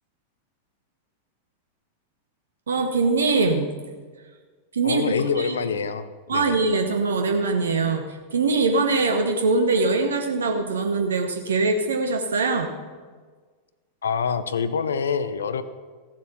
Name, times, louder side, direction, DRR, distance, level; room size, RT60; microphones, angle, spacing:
voice 1, 2.7-3.7 4.7-5.6 6.3-12.7, right 3 dB, 70° right, 4 dB, 1.0 m, -22 dB
voice 2, 4.8-6.6 14.0-15.6, left 6 dB, 70° left, 13 dB, 0.6 m, -26 dB
15.0 x 7.4 x 6.0 m, 1.5 s
figure-of-eight pair, 90°, 0 cm